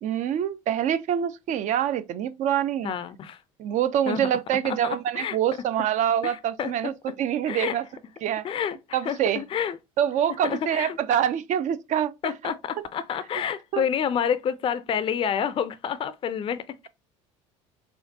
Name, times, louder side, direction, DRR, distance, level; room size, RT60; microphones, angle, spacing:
voice 1, 0.0-2.9 3.6-7.8 8.2-8.5 8.9-9.4 10.0-12.5 13.7-13.8, right 10 dB, 50° right, 0.5 m, -25 dB
voice 2, 2.8-3.4 4.1-4.3 4.6-5.4 6.2-6.7 7.5-7.8 8.4-9.8 10.4-11.0 12.2-16.9, left 8 dB, 35° left, 0.4 m, -29 dB
4.4 x 2.3 x 2.7 m
hypercardioid pair, 70°, 16 cm